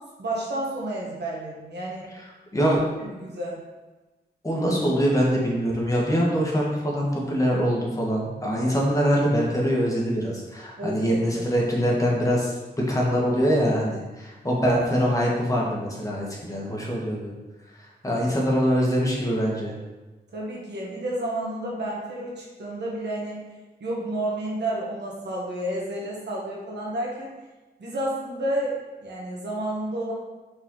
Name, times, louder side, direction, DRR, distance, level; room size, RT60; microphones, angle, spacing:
voice 1, 0.2-2.0 3.0-3.6 10.8-11.4 20.3-23.4 23.8-27.3 27.8-30.1, right 1 dB, 80° right, -4 dB, 1.4 m, -30 dB
voice 2, 4.4-17.3 18.0-19.7, equal, 20° left, -3 dB, 1.7 m, -23 dB
5.9 x 4.4 x 3.9 m, 1.2 s
wide cardioid pair, 85°, 18 cm